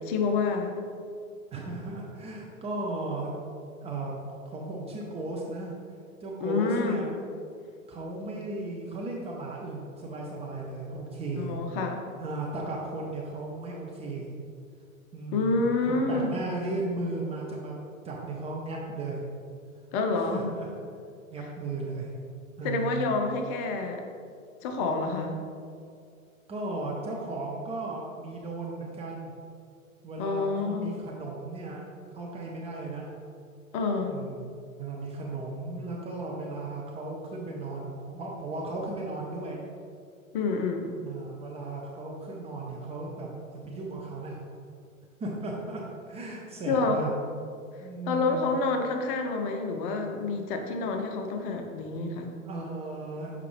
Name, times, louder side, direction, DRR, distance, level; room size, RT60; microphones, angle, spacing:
voice 1, 0.0-0.8 6.4-7.0 11.4-12.0 15.3-16.3 19.9-20.5 22.6-24.0 24.6-25.4 30.2-31.0 33.7-34.2 40.3-41.0 46.7-47.0 48.1-52.3, left 3 dB, 40° left, 4 dB, 0.8 m, -28 dB
voice 2, 1.5-3.3 3.8-4.1 4.4-5.7 6.2-7.1 7.9-11.6 12.2-14.3 15.1-17.7 18.0-19.2 20.2-20.7 21.3-22.1 22.6-23.1 26.5-29.3 30.0-31.8 32.1-33.1 34.0-39.6 41.0-43.3 43.6-44.4 45.2-47.1 47.8-48.5 52.4-53.3, right 2 dB, 15° right, -2 dB, 0.5 m, -35 dB
6.7 x 5.0 x 3.3 m, 2.3 s
figure-of-eight pair, 100°, 42 cm